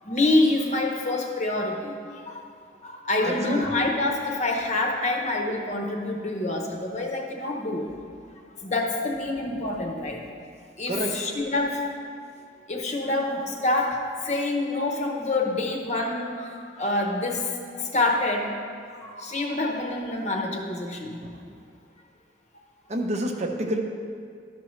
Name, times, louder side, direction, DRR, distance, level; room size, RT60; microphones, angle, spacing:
voice 1, 0.0-2.5 2.8-7.9 8.6-10.2 10.8-11.8 12.7-18.5 18.9-21.2, left 2 dB, 40° left, 2 dB, 0.8 m, -27 dB
voice 2, 3.3-3.6 10.9-11.1 21.2-21.3 22.9-23.8, right 1 dB, 35° right, 2 dB, 0.6 m, -28 dB
12.0 x 5.9 x 3.1 m, 2.2 s
head